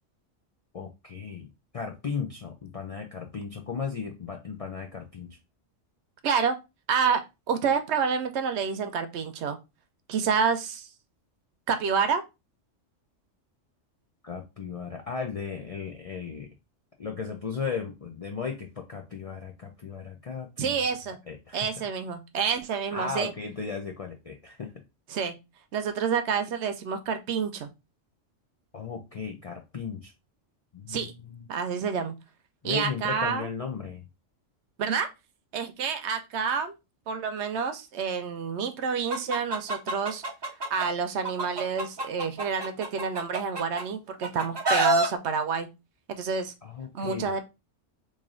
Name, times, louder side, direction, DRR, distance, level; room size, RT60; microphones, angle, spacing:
voice 1, 0.7-1.5 1.7-5.4 14.2-16.5 17.0-20.8 21.3-21.7 22.9-24.7 28.7-30.1 30.7-31.5 32.6-34.0 46.6-47.3, left 5 dB, 55° left, 2 dB, 0.4 m, -36 dB
voice 2, 6.2-6.6 6.9-9.6 10.1-10.9 11.7-12.2 20.6-21.2 21.5-23.3 25.1-25.3 25.7-27.7 30.9-31.1 31.5-32.1 32.6-33.5 34.8-35.1 35.5-36.7 37.1-40.2 40.7-45.7 46.1-46.5 46.9-47.4, right 6 dB, 70° right, 8 dB, 0.8 m, -28 dB
Chicken rooster, 39.1-40.8 41.2-43.8 44.2-45.1, right 1 dB, 45° right, 0.3 m, -27 dB
3.2 x 2.6 x 3.7 m, 0.25 s
omnidirectional pair, 1.3 m